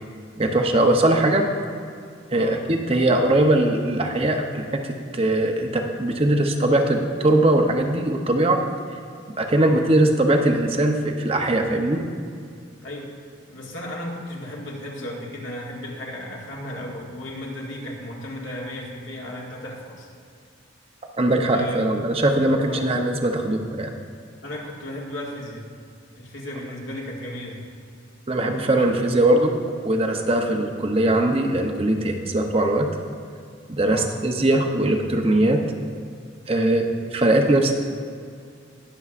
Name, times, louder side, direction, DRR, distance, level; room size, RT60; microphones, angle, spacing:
voice 1, 0.4-1.5 2.3-8.6 9.4-12.0 21.2-23.9 28.3-29.5 29.8-32.9 33.7-35.6 36.5-36.9 37.1-37.7, right 1 dB, 30° right, 3 dB, 0.7 m, -20 dB
voice 2, 13.5-20.1 21.5-21.8 22.7-22.8 24.4-25.6 26.2-27.6 33.8-34.1 36.5-36.8, left 1 dB, 75° left, -3 dB, 2.0 m, -35 dB
20.0 x 6.9 x 2.5 m, 2.3 s
head